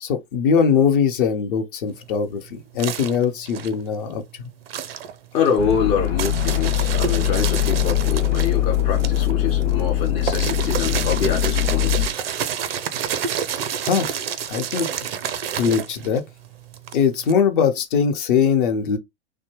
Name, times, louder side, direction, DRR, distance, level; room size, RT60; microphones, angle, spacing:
voice 1, 0.0-4.5 13.8-14.2 14.5-14.9 15.2-16.2 16.9-19.0, left 6 dB, 50° left, 0.7 m, -21 dB
sound 1, 1.9-4.2 4.6-17.3, right 8 dB, 60° right, 0.5 m, -29 dB
voice 2, 5.3-12.1, left 7 dB, 20° left, 0.4 m, -25 dB
sound 2, 5.6-12.1, left 11 dB, 85° left, 0.6 m, -22 dB
2.6 x 2.1 x 3.0 m
figure-of-eight pair, 100°, 34 cm